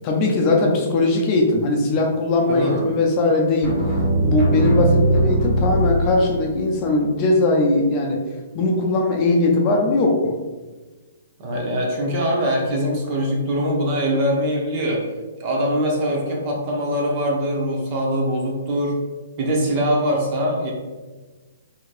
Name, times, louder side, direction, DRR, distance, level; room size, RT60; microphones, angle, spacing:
voice 1, 0.0-3.8 4.2-8.2 8.5-10.3, left 2 dB, 35° left, 0 dB, 0.5 m, -19 dB
voice 2, 2.5-2.8 11.4-15.1 15.4-19.0 19.4-20.7, equal, 40° right, -2 dB, 0.8 m, -22 dB
sound 1, 3.6-6.8, right 2 dB, ahead, 1.4 m, -20 dB
3.0 x 2.7 x 2.5 m, 1.3 s
hypercardioid pair, 140°, 0 cm